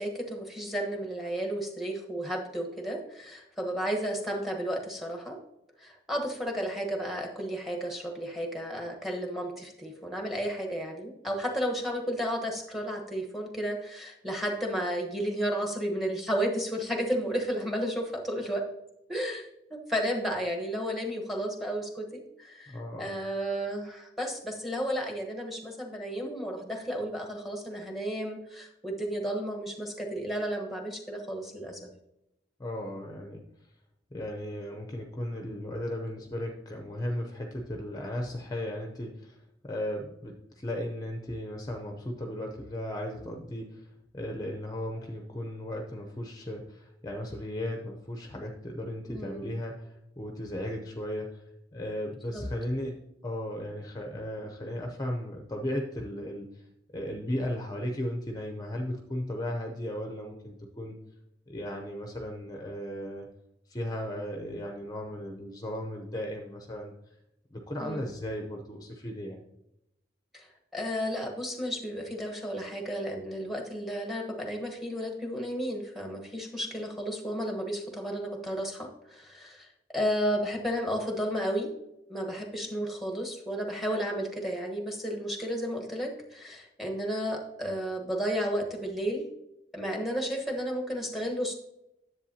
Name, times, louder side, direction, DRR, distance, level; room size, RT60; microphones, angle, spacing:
voice 1, 0.0-5.4 5.8-18.6 19.1-31.9 49.1-49.5 52.3-52.4 67.8-68.1 70.3-79.7 79.9-81.7 82.1-89.2 89.7-91.5, equal, ahead, 1 dB, 1.2 m, -33 dB
voice 2, 22.7-23.2 32.6-33.4 34.1-43.9 44.1-51.4 51.7-56.6 56.9-61.0 61.5-63.3 63.7-66.9 67.5-69.4, left 1 dB, 20° left, 2 dB, 0.6 m, -36 dB
10.5 x 7.6 x 2.8 m, 0.86 s
head